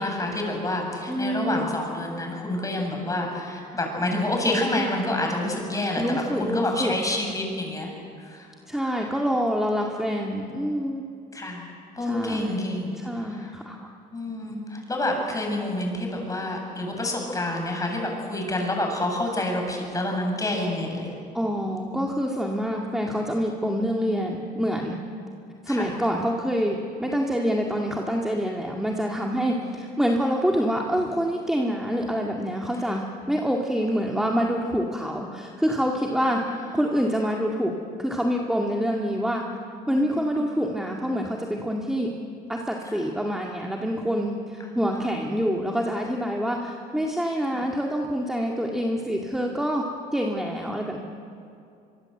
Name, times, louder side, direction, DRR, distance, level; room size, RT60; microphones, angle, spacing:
voice 1, 0.0-7.9 8.2-8.5 11.3-11.7 12.0-13.0 13.3-13.5 14.1-21.1 25.7-25.9 29.4-29.8 39.9-40.4 42.9-43.1 44.9-45.0 47.5-47.6 50.5-51.0, left 1 dB, 20° left, 1 dB, 7.1 m, -28 dB
voice 2, 1.1-1.6 6.0-7.0 8.7-11.0 12.0-12.6 12.9-13.8 21.3-25.0 25.6-36.4 36.7-37.7 38.0-39.4 39.9-42.1 42.5-49.9 50.1-51.0, equal, 5° right, 0 dB, 2.2 m, -26 dB
25.0 x 23.5 x 8.0 m, 2.5 s
cardioid pair, 110°, 17 cm